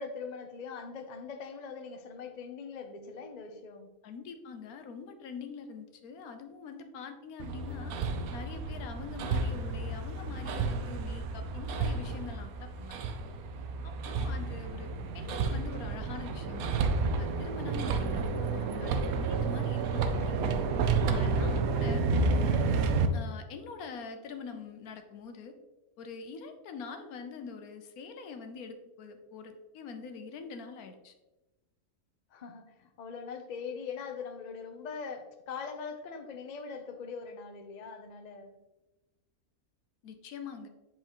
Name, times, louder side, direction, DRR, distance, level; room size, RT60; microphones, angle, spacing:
voice 1, 0.0-3.9 32.3-38.6, left 5 dB, 50° left, 5 dB, 0.5 m, -42 dB
voice 2, 4.0-7.9 8.3-13.1 13.8-16.7 17.2-20.7 21.1-22.1 23.1-25.5 26.0-31.1 40.0-40.7, left 5 dB, 75° left, 7 dB, 1.2 m, -44 dB
Hammer, 7.4-23.1, right 4 dB, 75° right, 1.0 m, -31 dB
7.7 x 4.6 x 3.0 m, 1.1 s
omnidirectional pair, 1.6 m